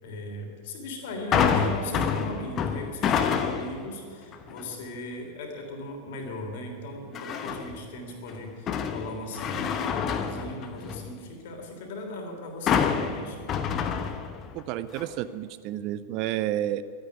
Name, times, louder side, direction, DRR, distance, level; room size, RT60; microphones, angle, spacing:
voice 1, 0.0-13.5, left 1 dB, 50° left, 2 dB, 3.5 m, -38 dB
sound 1, 1.3-3.8 4.3-4.7 7.1-7.8 8.3-11.1 12.7-14.6 14.9-15.1, left 7 dB, 30° left, 1.1 m, -27 dB
voice 2, 14.5-16.8, right 13 dB, 40° right, 14 dB, 0.6 m, -30 dB
12.5 x 10.5 x 10.0 m, 2.2 s
figure-of-eight pair, 90°, 0 cm